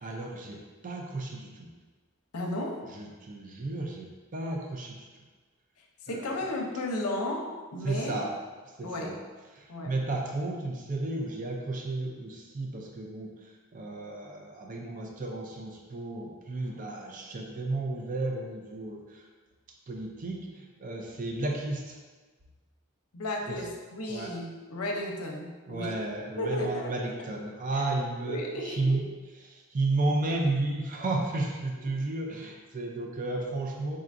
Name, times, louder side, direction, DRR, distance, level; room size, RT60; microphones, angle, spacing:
voice 1, 0.0-1.7 2.8-5.1 6.1-6.4 7.8-8.3 8.8-9.2 9.6-19.3 19.9-22.0 23.5-23.6 24.1-24.3 25.7-29.1 29.4-34.0, right 2 dB, 35° right, 0 dB, 0.4 m, -33 dB
voice 2, 2.3-2.8 6.0-8.2 8.8-9.2 9.7-9.9 23.1-26.0 26.4-27.2 28.3-29.0, left 1 dB, 80° left, 1 dB, 0.6 m, -34 dB
4.4 x 3.7 x 2.5 m, 1.3 s
head